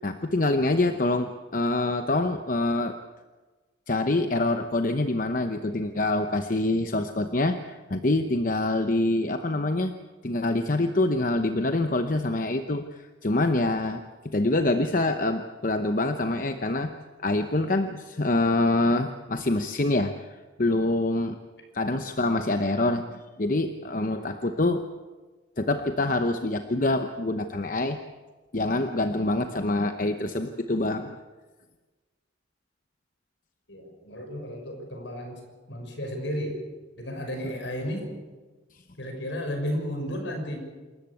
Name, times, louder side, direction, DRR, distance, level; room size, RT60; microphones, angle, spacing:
voice 1, 0.0-3.0 3.9-9.9 10.2-14.0 14.3-16.9 17.2-21.4 21.7-24.9 25.6-28.0 28.5-31.2, left 2 dB, 45° left, 7 dB, 0.9 m, -25 dB
voice 2, 33.7-35.4 35.7-36.6 37.0-38.1 39.0-40.6, equal, 70° left, 3 dB, 6.2 m, -33 dB
27.5 x 14.0 x 8.5 m, 1.3 s
head